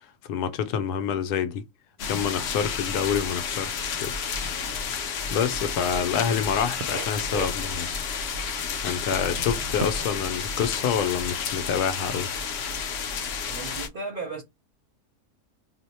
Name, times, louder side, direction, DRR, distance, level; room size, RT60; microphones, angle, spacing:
voice 1, 0.3-1.6 2.1-4.2 5.3-7.9 8.8-12.3, left 7 dB, 85° left, 1.1 m, -27 dB
sound 1, 2.0-13.9, left 6 dB, 60° left, 0.7 m, -31 dB
sound 2, 6.3-6.5 6.8-7.6 8.0-8.2 9.0-10.2 10.6-11.4 12.0-12.5, right 5 dB, 80° right, 1.1 m, -37 dB
voice 2, 13.4-14.4, right 3 dB, 45° right, 0.7 m, -35 dB
2.7 x 2.1 x 4.0 m
omnidirectional pair, 1.6 m